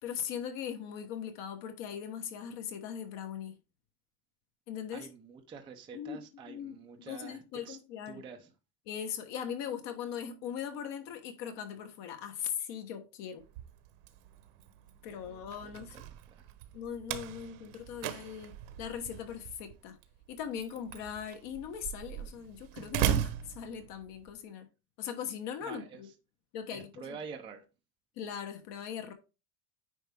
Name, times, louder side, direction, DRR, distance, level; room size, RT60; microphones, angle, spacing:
voice 1, 0.0-3.6 4.7-5.1 5.9-6.2 6.5-8.2 8.9-13.4 15.0-16.1 16.7-20.0 20.3-24.7 25.0-26.1 26.5-27.2 28.2-29.1, left 8 dB, 60° left, 1.3 m, -40 dB
voice 2, 4.9-7.4 7.6-7.8 8.1-8.5 15.1-15.8 16.3-16.5 25.7-26.0 26.7-27.6, right 6 dB, 10° right, 0.4 m, -47 dB
Slam, 13.4-24.3, right 13 dB, 70° right, 1.1 m, -38 dB
9.4 x 4.6 x 3.5 m
cardioid pair, 165°, 48 cm